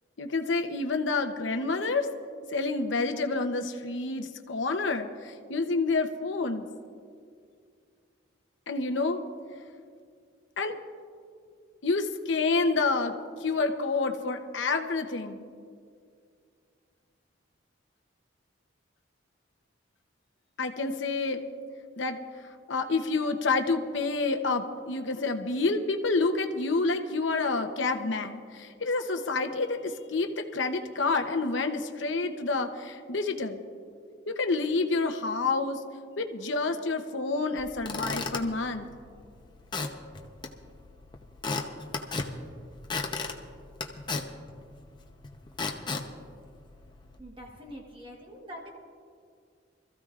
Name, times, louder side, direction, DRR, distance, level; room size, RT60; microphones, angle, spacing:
voice 1, 0.2-2.1 2.5-6.6 8.7-9.2 10.6-10.8 11.8-13.1 13.4-15.4 20.6-21.4 22.0-22.2 22.7-33.6 34.3-35.8 36.2-38.9, left 3 dB, 75° left, 6 dB, 0.9 m, -28 dB
Squeak / Wood, 37.6-47.2, left 3 dB, 25° left, 0.8 m, -37 dB
voice 2, 47.2-48.7, equal, 25° right, -1 dB, 1.3 m, -44 dB
25.0 x 14.5 x 2.5 m, 2.2 s
head